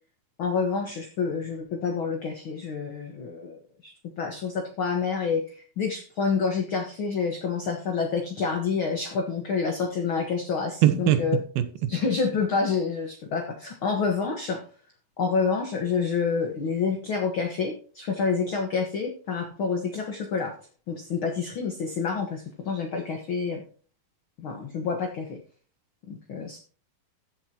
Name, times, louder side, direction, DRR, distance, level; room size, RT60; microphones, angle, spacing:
voice 1, 0.4-11.4 11.9-14.6 15.2-20.5 20.9-23.6 24.4-25.4 26.1-26.6, left 5 dB, 60° left, 1.4 m, -28 dB
voice 2, 10.8-11.9, right 12 dB, 80° right, 2.8 m, -23 dB
15.0 x 8.2 x 2.9 m
omnidirectional pair, 4.4 m